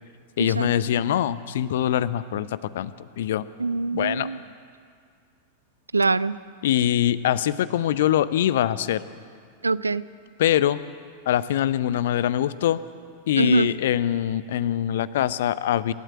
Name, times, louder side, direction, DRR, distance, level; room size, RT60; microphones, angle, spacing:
voice 1, 0.4-3.4 3.9-4.3 6.6-9.0 10.4-10.8 11.3-12.8 13.3-15.9, left 11 dB, 55° left, 16 dB, 0.7 m, -23 dB
voice 2, 3.6-4.4 5.9-6.3 9.6-10.0 13.4-13.7, right 3 dB, 80° right, 18 dB, 0.5 m, -23 dB
27.5 x 12.5 x 8.4 m, 2.1 s
figure-of-eight pair, 90°, 0 cm